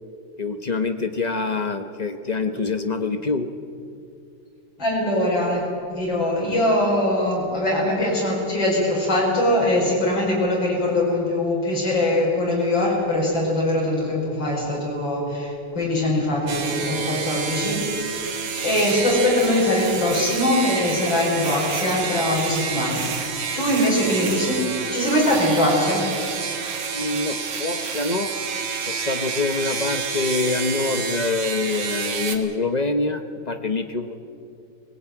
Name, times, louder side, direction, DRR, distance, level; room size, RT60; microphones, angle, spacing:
voice 1, 0.4-3.5 26.9-28.3 28.9-34.2, left 3 dB, 40° left, 7 dB, 0.6 m, -25 dB
voice 2, 4.8-18.3 18.6-23.1 23.6-26.1, left 1 dB, 70° left, -4 dB, 6.1 m, -22 dB
sound 1, 16.5-32.4, right 5 dB, 70° right, 2.3 m, -29 dB
20.5 x 18.0 x 9.0 m, 2.5 s
omnidirectional pair, 2.1 m